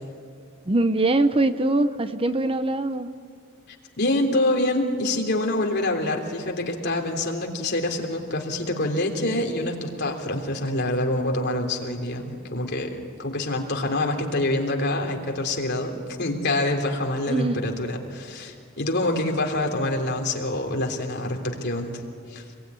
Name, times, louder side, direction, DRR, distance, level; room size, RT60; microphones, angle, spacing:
voice 1, 0.6-3.1 17.3-17.7, right 2 dB, 25° right, 11 dB, 0.8 m, -22 dB
voice 2, 4.0-22.0 22.3-22.4, left 1 dB, 55° left, 2 dB, 3.4 m, -26 dB
27.0 x 22.0 x 9.8 m, 2.2 s
head